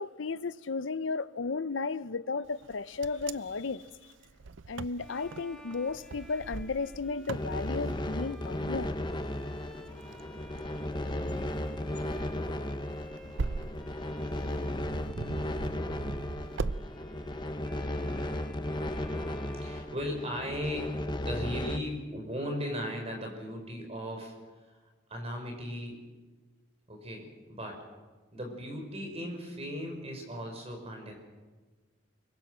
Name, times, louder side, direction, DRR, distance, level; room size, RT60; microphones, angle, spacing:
voice 1, 0.0-3.8 4.7-9.0, left 4 dB, 80° left, 0.7 m, -34 dB
Wind, 2.6-16.8, right 3 dB, 75° right, 0.6 m, -41 dB
Bowed string instrument, 5.0-20.7, equal, 5° left, 1.9 m, -53 dB
sound 1, 7.3-21.8, left 1 dB, 25° left, 1.0 m, -35 dB
voice 2, 19.6-24.3 25.1-26.0 26.9-27.8 28.3-31.1, equal, 35° right, 5.1 m, -37 dB
25.5 x 23.0 x 6.2 m
head